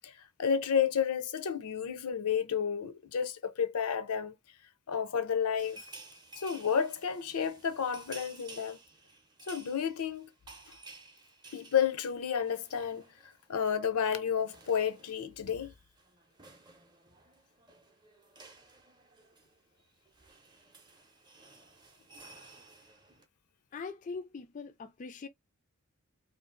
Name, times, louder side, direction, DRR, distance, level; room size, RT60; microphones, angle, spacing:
voice 1, 0.0-4.3 4.9-5.8 6.4-8.8 9.5-10.3 11.5-13.0 13.5-15.7, left 7 dB, 85° left, 0.6 m, -31 dB
sound 1, 5.6-13.5 13.7-13.9 14.2-23.2, right 3 dB, 20° right, 0.6 m, -54 dB
voice 2, 23.7-25.3, left 4 dB, 35° left, 0.3 m, -42 dB
2.6 x 2.4 x 3.7 m
head